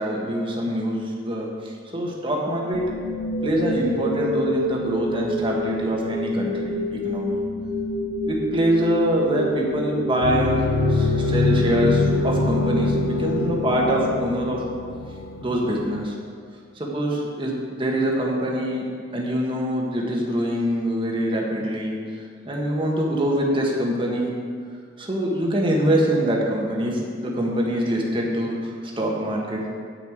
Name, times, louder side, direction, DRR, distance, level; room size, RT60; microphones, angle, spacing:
voice 1, 0.0-2.9 3.4-7.4 8.3-14.6 15.4-16.1 16.7-18.9 19.1-24.3 25.0-28.7 29.0-29.6, equal, 25° right, -2 dB, 1.6 m, -24 dB
sound 1, 2.7-14.8, equal, 35° left, 1.5 m, -28 dB
sound 2, 10.2-16.0, left 3 dB, 65° left, 0.6 m, -25 dB
9.1 x 5.9 x 8.0 m, 2.1 s
head